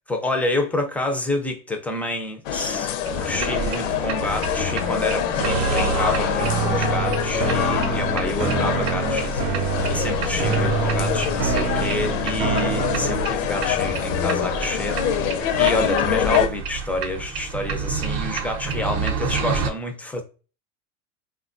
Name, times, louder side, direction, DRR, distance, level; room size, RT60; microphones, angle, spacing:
voice 1, 0.1-2.9 3.2-20.2, left 1 dB, 5° left, 0.3 m, -28 dB
sound 1, 2.5-16.5, left 9 dB, 75° left, 0.6 m, -25 dB
sound 2, 3.1-19.7, right 5 dB, 45° right, 0.7 m, -30 dB
sound 3, 5.4-13.5, right 9 dB, 85° right, 0.5 m, -27 dB
3.3 x 2.2 x 2.5 m
hypercardioid pair, 105°, 38 cm